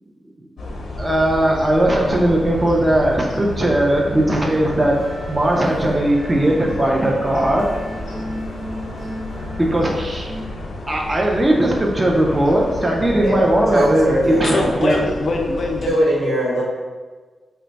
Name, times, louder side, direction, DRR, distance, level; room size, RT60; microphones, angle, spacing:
sound 1, 0.6-15.9, left 1 dB, 90° left, 0.7 m, -32 dB
voice 1, 1.0-5.0 5.3-7.7 9.5-10.3 10.9-15.0, right 1 dB, 20° right, -1 dB, 0.4 m, -18 dB
sound 2, 3.9-10.4, left 1 dB, 50° right, 0.8 m, -35 dB
voice 2, 13.7-14.7 15.9-16.6, equal, 80° right, -6 dB, 1.1 m, -20 dB
voice 3, 14.4-16.0, left 2 dB, 50° left, 2 dB, 0.4 m, -23 dB
2.9 x 2.2 x 3.9 m, 1.4 s
wide cardioid pair, 155°, 0 cm